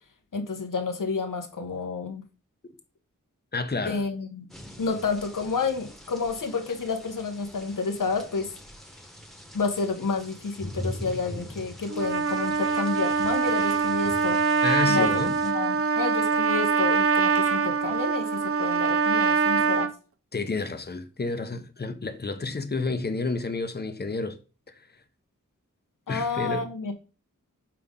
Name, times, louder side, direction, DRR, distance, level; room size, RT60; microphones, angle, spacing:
voice 1, 0.3-2.2 3.8-4.5 4.8-8.5 9.5-14.4 14.9-19.9 26.1-26.9, left 4 dB, 80° left, 1.0 m, -30 dB
voice 2, 3.5-4.0 14.6-15.3 19.6-19.7 20.3-24.4 26.1-26.7, left 3 dB, 30° left, 0.8 m, -30 dB
sound 1, 4.5-15.5, left 1 dB, ahead, 1.2 m, -42 dB
Trumpet, 11.9-19.9, right 5 dB, 45° right, 0.5 m, -24 dB
5.8 x 5.0 x 3.7 m
wide cardioid pair, 70°, 32 cm